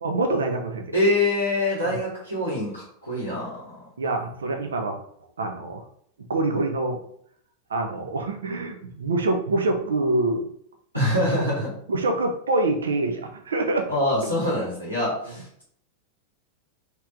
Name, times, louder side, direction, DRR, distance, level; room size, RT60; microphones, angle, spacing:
voice 1, 0.0-0.9 1.8-2.0 4.0-5.0 5.4-5.8 6.3-7.0 7.7-10.5 11.1-11.4 11.9-13.9, right 2 dB, 70° right, 4 dB, 0.6 m, -25 dB
voice 2, 0.9-3.6 10.9-11.7 13.9-15.6, left 1 dB, 90° right, -8 dB, 1.4 m, -25 dB
3.3 x 2.9 x 3.6 m, 0.66 s
figure-of-eight pair, 90°, 0 cm